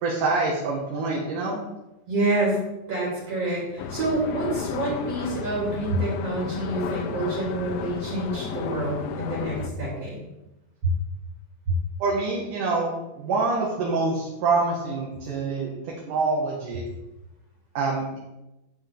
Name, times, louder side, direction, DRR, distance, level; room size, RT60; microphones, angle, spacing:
voice 1, 0.0-1.6 12.0-16.8 17.7-18.2, right 3 dB, 65° right, -3 dB, 2.9 m, -26 dB
voice 2, 2.1-2.6 2.9-10.2 10.8-10.9 11.7-11.8, right 2 dB, 45° right, -5 dB, 3.7 m, -27 dB
sound 1, 3.8-9.7, left 7 dB, 80° left, 2.5 m, -33 dB
11.0 x 8.5 x 3.5 m, 0.95 s
omnidirectional pair, 4.1 m